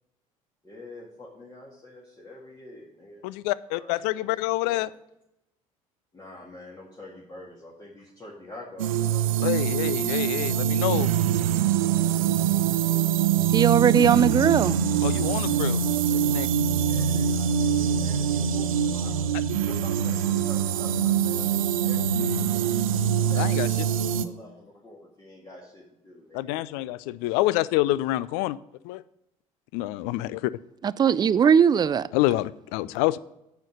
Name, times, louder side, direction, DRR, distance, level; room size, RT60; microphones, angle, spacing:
voice 1, 0.6-3.3 3.7-4.4 4.7-4.8 6.1-9.3 16.8-22.5 23.3-23.5 24.2-26.6, left 1 dB, 20° left, 2.1 m, -46 dB
voice 2, 3.2-4.9 9.4-11.1 15.0-16.5 23.4-23.7 26.3-28.6 28.8-29.0 29.7-30.5 32.1-33.2, left 17 dB, 60° left, 0.4 m, -27 dB
sound 1, 8.8-24.3, right 8 dB, 75° right, 0.5 m, -24 dB
voice 3, 13.5-14.8 17.1-17.2 30.8-32.1, right 7 dB, 25° right, 0.4 m, -19 dB
9.2 x 5.2 x 6.3 m
figure-of-eight pair, 60°, 18 cm